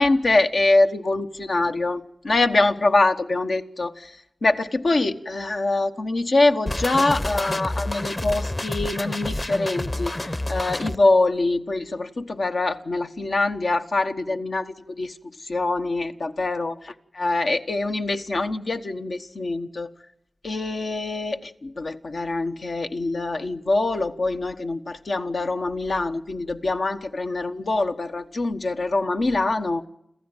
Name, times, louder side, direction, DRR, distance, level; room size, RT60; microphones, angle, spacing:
voice 1, 0.0-4.2 4.4-15.2 15.4-16.7 17.2-19.9 20.4-29.9, left 2 dB, 80° left, 1.3 m, -24 dB
sound 1, 6.7-11.0, left 1 dB, 35° left, 1.0 m, -28 dB
27.0 x 14.5 x 8.9 m
wide cardioid pair, 55°, 0 cm